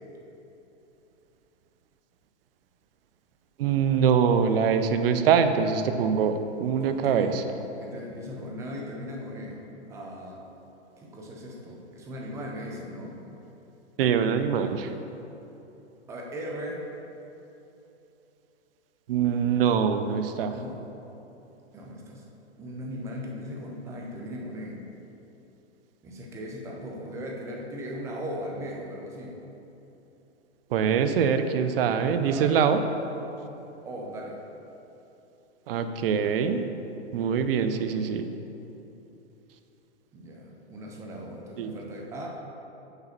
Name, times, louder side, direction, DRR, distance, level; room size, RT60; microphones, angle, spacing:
voice 1, 3.6-7.4 14.0-14.9 19.1-20.5 30.7-32.8 35.7-36.6 37.1-38.3 41.6-41.7, right 7 dB, 55° right, 9 dB, 0.6 m, -24 dB
voice 2, 6.8-7.5 7.8-9.6 9.9-10.4 11.0-13.1 16.1-16.9 20.5-20.8 21.7-22.2 22.6-24.8 26.0-29.3 32.2-32.6 33.8-34.4 40.1-42.3, equal, 10° right, -1 dB, 0.4 m, -38 dB
6.4 x 4.8 x 5.7 m, 3.0 s
hypercardioid pair, 145°, 34 cm